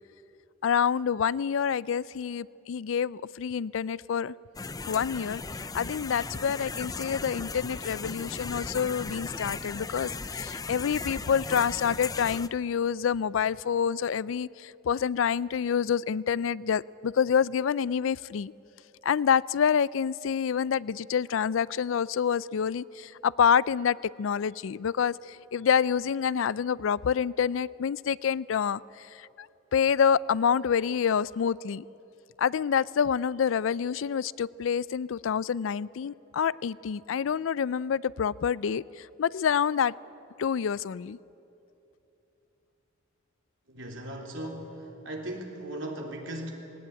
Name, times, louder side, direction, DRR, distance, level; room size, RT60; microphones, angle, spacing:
voice 1, 0.6-4.3 4.9-5.4 5.7-18.5 19.0-29.5 29.7-31.8 32.4-39.9 40.4-41.2, left 7 dB, 75° left, 21 dB, 0.4 m, -27 dB
sound 1, 4.5-12.5, left 4 dB, 20° left, 0.5 m, -37 dB
voice 2, 43.7-46.5, right 1 dB, 70° right, 1 dB, 3.4 m, -38 dB
19.0 x 18.0 x 9.9 m, 3.0 s
head